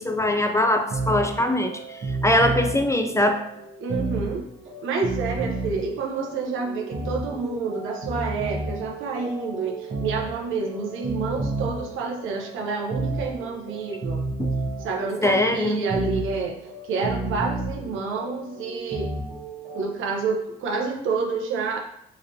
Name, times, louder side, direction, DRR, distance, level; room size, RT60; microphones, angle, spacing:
voice 1, 0.0-1.7 2.2-3.4 14.4-14.5 15.2-15.8, left 1 dB, 15° left, 5 dB, 0.3 m, -21 dB
sound 1, 0.6-19.8, right 2 dB, 45° right, 1.0 m, -32 dB
voice 2, 3.8-4.4 4.8-14.2 14.8-16.5 16.8-19.1 19.7-21.8, right 4 dB, 85° right, 0 dB, 0.8 m, -28 dB
3.9 x 3.2 x 2.7 m, 0.76 s
cardioid pair, 90°, 20 cm